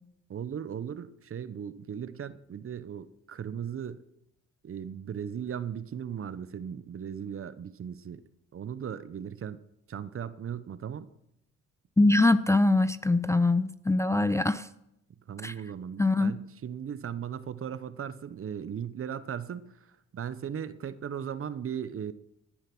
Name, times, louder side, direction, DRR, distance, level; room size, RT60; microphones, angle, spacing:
voice 1, 0.3-4.0 4.6-8.2 8.5-9.6 9.9-11.1 15.3-22.1, right 8 dB, 45° right, 0.9 m, -37 dB
voice 2, 12.0-14.7 15.4-15.5 16.0-16.3, left 2 dB, 10° left, 0.5 m, -23 dB
18.0 x 10.5 x 6.1 m
cardioid pair, 90°, 30 cm